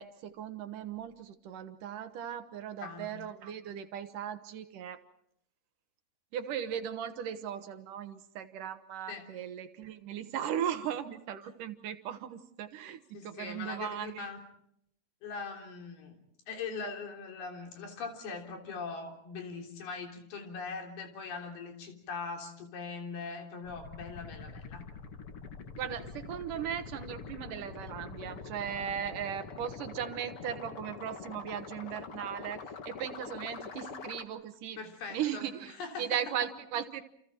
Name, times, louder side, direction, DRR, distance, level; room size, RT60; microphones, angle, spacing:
voice 1, 0.0-5.0 6.3-14.3 25.8-34.8 35.1-37.0, right 9 dB, 65° right, 10 dB, 2.6 m, -37 dB
voice 2, 2.8-3.1 9.1-9.3 13.1-14.4 15.2-24.9 34.8-36.2, left 4 dB, 90° left, 3 dB, 5.5 m, -41 dB
sound 1, 23.6-34.2, left 5 dB, 50° left, 2.0 m, -45 dB
29.5 x 29.0 x 4.5 m, 0.72 s
omnidirectional pair, 4.3 m